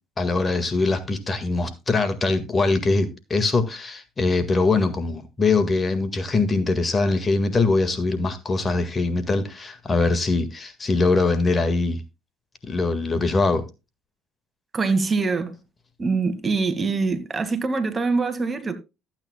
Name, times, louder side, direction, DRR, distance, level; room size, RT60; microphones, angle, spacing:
voice 1, 0.2-12.0 12.6-13.6, left 3 dB, 30° left, 1.7 m, -22 dB
voice 2, 14.7-15.5 16.0-18.7, right 4 dB, 30° right, 1.9 m, -24 dB
14.0 x 9.0 x 2.2 m
supercardioid pair, 75°, 0 cm